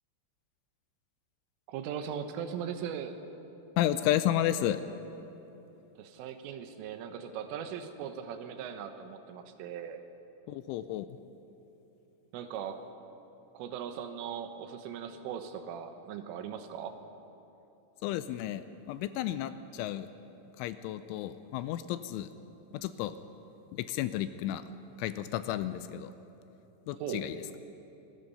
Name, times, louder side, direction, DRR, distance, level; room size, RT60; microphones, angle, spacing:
voice 1, 1.7-3.2 6.0-10.0 12.3-12.9 13.6-16.9 27.0-27.3, right 8 dB, 80° right, 8 dB, 3.6 m, -39 dB
voice 2, 3.8-4.8 10.5-11.1 18.0-20.1 20.6-22.3 22.7-23.1 23.7-24.7 25.0-26.1 26.9-27.4, left 12 dB, 85° left, 12 dB, 2.9 m, -32 dB
25.5 x 20.0 x 5.6 m, 3.0 s
omnidirectional pair, 5.8 m